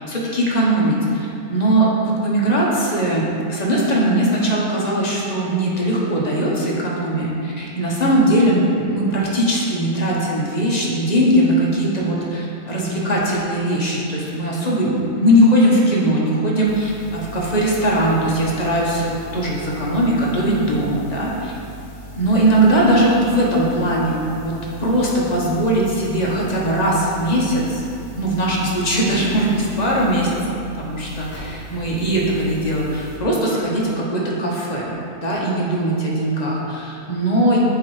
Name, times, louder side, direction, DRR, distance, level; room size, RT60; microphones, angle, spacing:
voice 1, 0.1-21.5 22.1-27.8 28.2-34.9 35.2-37.6, right 1 dB, 35° left, -4 dB, 0.9 m, -20 dB
sound 1, 16.7-33.2, equal, 70° left, 1.9 m, -38 dB
7.2 x 2.9 x 4.7 m, 2.7 s
omnidirectional pair, 1.5 m